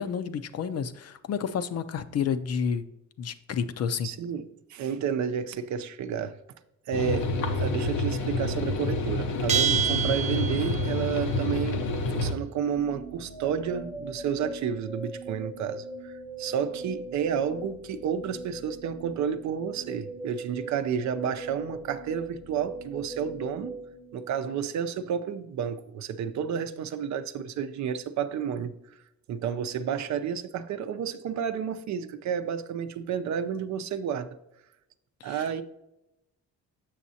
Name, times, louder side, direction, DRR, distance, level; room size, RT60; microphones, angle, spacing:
voice 1, 0.0-2.9 3.2-4.1 35.2-35.6, left 7 dB, 55° left, 0.6 m, -30 dB
voice 2, 4.0-4.4 4.7-6.4 6.9-7.3 7.6-11.8 12.1-23.7 24.1-28.7 29.3-34.3 35.2-35.6, right 8 dB, 70° right, 0.6 m, -31 dB
sound 1, 6.9-12.3, left 2 dB, 85° left, 0.8 m, -28 dB
Bell, 9.5-11.1, right 8 dB, 25° right, 0.4 m, -27 dB
sound 2, 12.8-24.8, right 2 dB, ahead, 0.7 m, -40 dB
7.2 x 6.2 x 2.7 m
cardioid pair, 90°, 30 cm